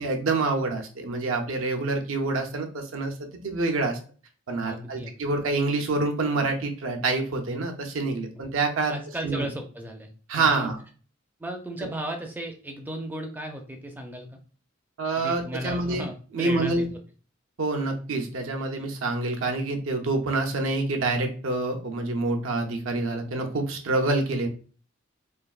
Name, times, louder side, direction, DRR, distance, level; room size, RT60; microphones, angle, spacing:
voice 1, 0.0-3.1 3.4-4.0 4.5-8.9 9.2-9.5 10.3-10.8 15.0-16.1 16.3-16.8 17.6-24.5, right 3 dB, 80° right, 4 dB, 0.6 m, -27 dB
voice 2, 4.6-5.1 8.3-8.5 8.9-10.7 11.4-14.4 15.2-16.9, right 1 dB, 10° right, 4 dB, 0.4 m, -35 dB
3.3 x 2.3 x 2.3 m, 0.39 s
head